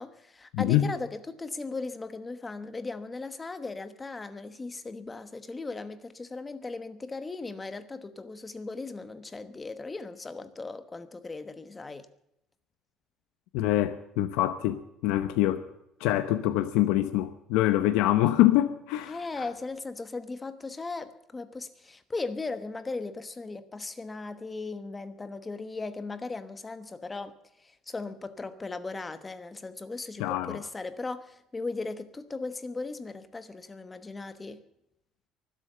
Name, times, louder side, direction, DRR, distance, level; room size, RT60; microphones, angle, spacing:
voice 1, 0.0-12.1 19.1-34.6, left 3 dB, 15° left, 1.1 m, -37 dB
voice 2, 0.5-0.9 13.5-15.7 16.0-19.4 30.2-30.6, left 14 dB, 85° left, 0.8 m, -25 dB
23.5 x 8.3 x 6.6 m
cardioid pair, 155°, 0 cm